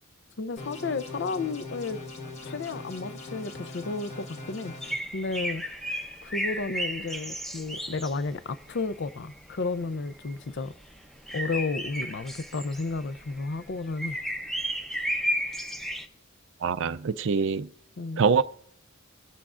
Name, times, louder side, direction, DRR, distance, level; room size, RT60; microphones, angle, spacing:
voice 1, 0.4-2.0 2.4-4.7 5.1-5.6 6.2-10.7 11.3-14.2 18.0-18.2, left 3 dB, 55° left, 0.5 m, -32 dB
sound 1, 0.6-4.9, left 2 dB, 30° left, 1.1 m, -41 dB
sound 2, 4.8-16.1, equal, ahead, 0.7 m, -34 dB
voice 2, 16.6-17.7 18.2-18.4, right 5 dB, 55° right, 0.4 m, -24 dB
23.5 x 8.4 x 2.5 m
head